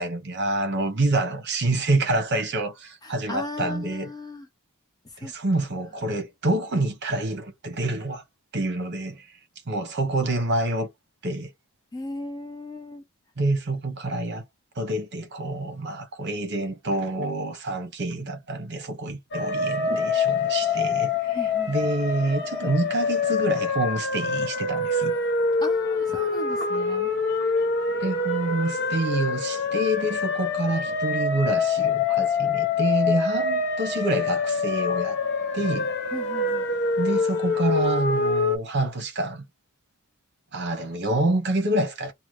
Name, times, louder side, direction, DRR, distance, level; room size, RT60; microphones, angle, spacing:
voice 1, 0.0-4.1 5.2-8.2 8.5-9.3 9.7-10.9 11.2-11.5 13.4-14.4 14.8-21.4 21.7-25.2 28.0-35.2 35.5-35.9 37.0-39.4 40.5-42.1, right 2 dB, 50° right, 0.9 m, -27 dB
voice 2, 3.0-4.5 5.1-5.3 11.9-13.0 21.3-21.7 25.6-27.1 36.1-36.7, left 2 dB, 20° left, 0.6 m, -36 dB
sound 1, 19.3-38.6, left 4 dB, 50° left, 0.7 m, -25 dB
2.8 x 2.1 x 3.1 m
head